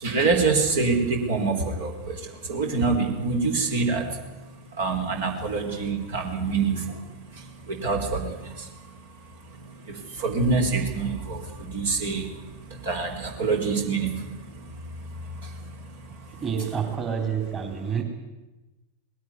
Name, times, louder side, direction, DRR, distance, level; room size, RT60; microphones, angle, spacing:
voice 1, 0.0-4.3 4.7-9.0 9.5-16.4, right 4 dB, 60° right, 3 dB, 4.2 m, -27 dB
voice 2, 16.4-18.0, right 7 dB, 25° right, 4 dB, 3.6 m, -28 dB
19.5 x 17.5 x 9.7 m, 1.1 s
figure-of-eight pair, 90°, 0 cm